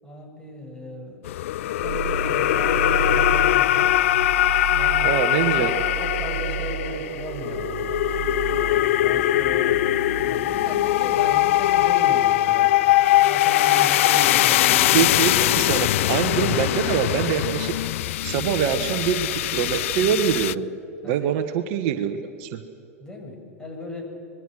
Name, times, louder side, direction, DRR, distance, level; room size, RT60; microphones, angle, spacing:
voice 1, 0.0-1.4 1.6-3.9 4.7-5.1 5.6-5.7 6.0-8.1 8.4-15.0 21.0-21.4 23.0-24.1, left 1 dB, 10° left, 1 dB, 6.5 m, -37 dB
sound 1, 1.3-20.5, left 15 dB, 65° left, 0.4 m, -21 dB
sound 2, 1.8-13.2, right 7 dB, 75° right, 0.8 m, -32 dB
voice 2, 5.0-5.7 14.9-17.7 18.2-20.6 21.0-22.6, right 9 dB, 55° right, 8 dB, 1.4 m, -24 dB
25.5 x 21.0 x 6.3 m, 2.6 s
hypercardioid pair, 100°, 8 cm